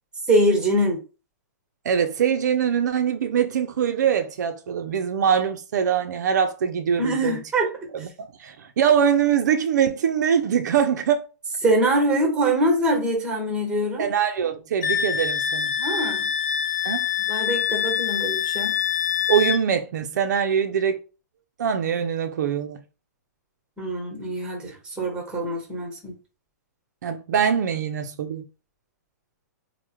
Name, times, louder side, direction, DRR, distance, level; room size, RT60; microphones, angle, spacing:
voice 1, 0.3-1.0 7.0-7.7 11.6-14.1 15.8-16.3 17.3-18.7 23.8-26.1, right 1 dB, 10° right, 1.1 m, -23 dB
voice 2, 1.8-7.4 7.9-8.1 8.4-11.2 14.0-15.7 16.8-17.1 19.3-21.0 21.6-22.8 27.0-28.4, right 8 dB, 70° right, 0.4 m, -23 dB
Wind instrument woodwind instrument, 14.8-19.6, left 8 dB, 75° left, 0.6 m, -25 dB
3.3 x 2.1 x 2.9 m
hypercardioid pair, 140°, 10 cm